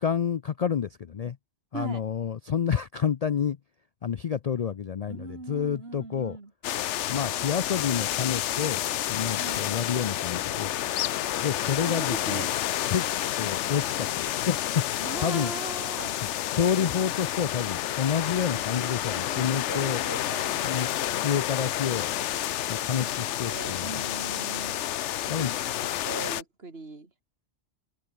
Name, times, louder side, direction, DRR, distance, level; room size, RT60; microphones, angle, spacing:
voice 1, 0.0-1.4 1.7-3.6 4.0-6.4 7.1-8.8 9.1-10.7 11.4-12.5 12.9-13.0 13.3-15.5 16.5-20.0 20.6-20.9 21.2-22.1 22.7-23.9 25.3-25.5, left 7 dB, 50° left, 0.5 m, -29 dB
voice 2, 5.1-6.5 9.4-9.6 11.8-12.7 15.0-16.2 16.8-16.9 18.5-18.7 19.1-20.9 23.0-23.1 23.4-24.8 25.2-27.1, right 3 dB, 60° right, 3.0 m, -40 dB
sound 1, 6.6-26.4, left 12 dB, 85° left, 0.9 m, -30 dB
open air
omnidirectional pair, 1.2 m